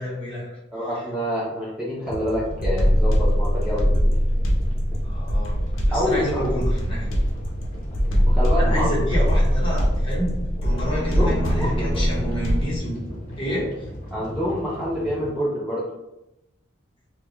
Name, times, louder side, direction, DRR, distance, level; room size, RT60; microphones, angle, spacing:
voice 1, 0.0-0.6 5.0-5.6 5.9-7.1 8.6-13.0 13.4-13.9, equal, 30° left, -6 dB, 1.2 m, -29 dB
voice 2, 0.7-4.3 5.9-6.6 8.1-9.3 11.1-12.0 14.1-15.9, equal, 5° right, -8 dB, 0.6 m, -27 dB
sound 1, 2.0-15.3, equal, 45° left, 0.9 m, -37 dB
sound 2, 2.1-12.8, equal, 80° left, 0.7 m, -22 dB
sound 3, 10.6-12.9, left 1 dB, 55° right, 1.0 m, -32 dB
3.5 x 2.3 x 3.0 m, 0.91 s
head